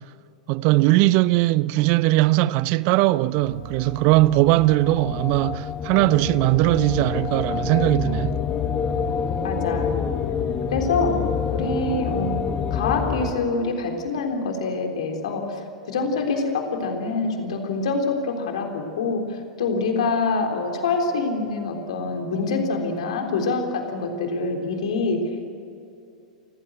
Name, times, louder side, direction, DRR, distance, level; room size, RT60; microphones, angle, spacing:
voice 1, 0.5-8.4, right 18 dB, 45° right, 0.6 m, -19 dB
sound 1, 3.4-13.3, left 6 dB, 30° left, 1.8 m, -27 dB
voice 2, 9.4-9.9 10.7-11.2 11.5-25.5, left 3 dB, 65° left, 3.6 m, -25 dB
28.5 x 15.5 x 7.8 m
figure-of-eight pair, 95°, 4 cm